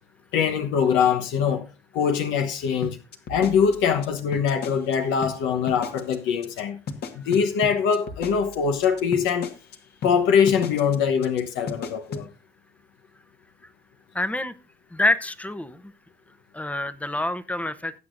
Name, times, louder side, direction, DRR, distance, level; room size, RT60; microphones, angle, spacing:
voice 1, 0.3-1.6 1.9-3.0 3.3-6.8 7.1-9.5 10.0-12.3, left 7 dB, 75° left, 1.1 m, -23 dB
sound 1, 2.8-4.9 5.2-5.3 5.7-6.1 6.4-6.6 6.9-9.7 10.0-10.1 10.5-10.9 11.2-11.4 11.7-12.2, left 5 dB, 55° left, 1.6 m, -34 dB
voice 2, 14.1-14.5 14.9-15.9 16.5-18.0, left 1 dB, 5° left, 0.8 m, -26 dB
19.0 x 8.3 x 2.6 m
supercardioid pair, 95°, 20 cm